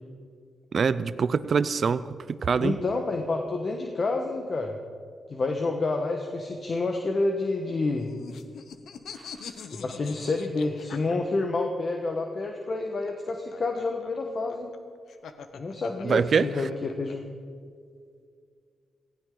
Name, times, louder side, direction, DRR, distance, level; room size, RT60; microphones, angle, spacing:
voice 1, 0.7-2.8 16.0-16.5, right 6 dB, 60° right, 15 dB, 0.6 m, -24 dB
voice 2, 2.6-4.8 5.3-8.1 9.7-14.7 15.5-17.3, left 3 dB, 50° left, 3 dB, 1.4 m, -29 dB
sound 1, 7.6-11.7 12.9-17.1, left 6 dB, 80° left, 0.9 m, -44 dB
18.0 x 16.0 x 3.9 m, 2.2 s
cardioid pair, 70°, 0 cm